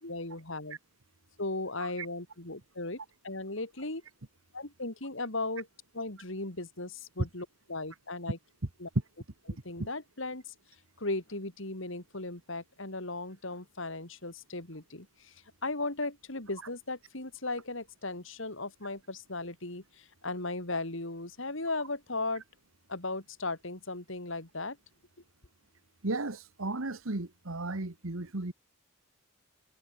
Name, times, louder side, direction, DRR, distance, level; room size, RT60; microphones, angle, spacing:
voice 1, 0.0-0.8 1.4-3.0 3.2-4.0 4.5-5.7 5.9-8.4 8.8-8.9 9.5-10.4 11.0-15.1 15.6-19.8 20.2-22.4 22.9-24.8, left 2 dB, 60° left, 3.0 m, -36 dB
voice 2, 26.0-28.5, right 2 dB, 70° right, 1.5 m, -35 dB
head